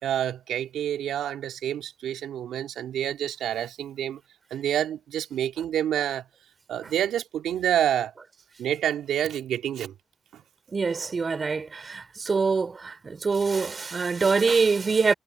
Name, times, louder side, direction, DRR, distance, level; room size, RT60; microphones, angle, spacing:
voice 1, 0.0-4.2 4.5-6.2 6.7-8.1 8.6-9.9 10.3-10.4, right 10 dB, 80° right, 2.8 m, -28 dB
voice 2, 10.7-15.1, right 4 dB, 45° right, 4.0 m, -24 dB
supercardioid pair, 45°, 0 cm